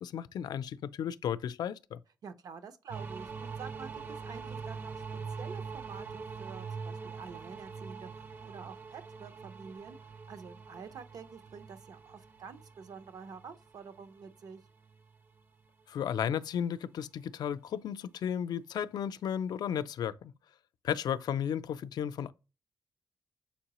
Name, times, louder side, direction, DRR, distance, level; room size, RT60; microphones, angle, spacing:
voice 1, 0.0-2.0 15.9-20.3 20.8-22.3, left 9 dB, 85° left, 0.4 m, -34 dB
voice 2, 2.2-10.0 10.3-14.6, right 6 dB, 70° right, 0.7 m, -48 dB
sound 1, 2.9-15.4, right 5 dB, 30° right, 0.5 m, -44 dB
7.1 x 4.7 x 2.9 m
wide cardioid pair, 175°, 7 cm